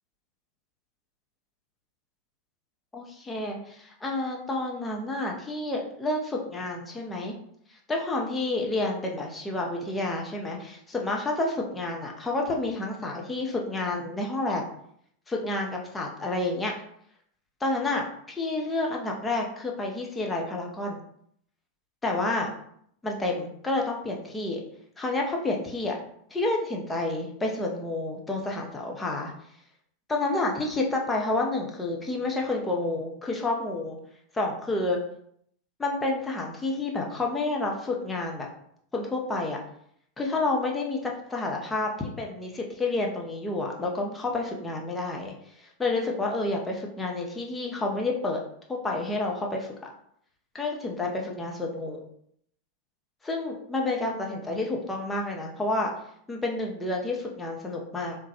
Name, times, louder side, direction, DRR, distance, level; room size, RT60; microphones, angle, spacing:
voice 1, 2.9-7.3 7.9-14.6 15.3-16.7 17.6-21.0 22.0-22.5 23.0-24.6 25.0-26.0 26.3-29.3 30.1-34.0 34.3-35.0 35.8-38.5 38.9-39.6 40.2-48.4 48.7-49.7 50.5-52.0 53.2-55.9 56.3-58.2, left 2 dB, 10° left, 0 dB, 0.7 m, -29 dB
3.6 x 3.0 x 2.9 m, 0.68 s
figure-of-eight pair, 90°, 0 cm